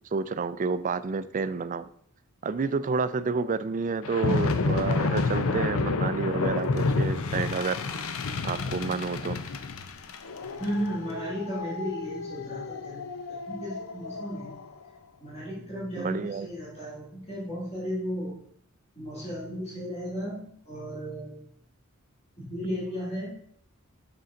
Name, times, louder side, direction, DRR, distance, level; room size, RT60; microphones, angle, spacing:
voice 1, 0.1-1.9 2.4-7.8 8.4-9.4 16.0-16.5, right 4 dB, 35° right, 13 dB, 0.4 m, -29 dB
sound 1, 4.0-14.6, left 3 dB, 75° left, 0.6 m, -30 dB
voice 2, 10.6-13.0 13.3-14.6 15.2-18.4 18.9-21.4 22.4-23.3, equal, 30° left, -8 dB, 3.0 m, -35 dB
6.8 x 6.2 x 3.8 m, 0.65 s
head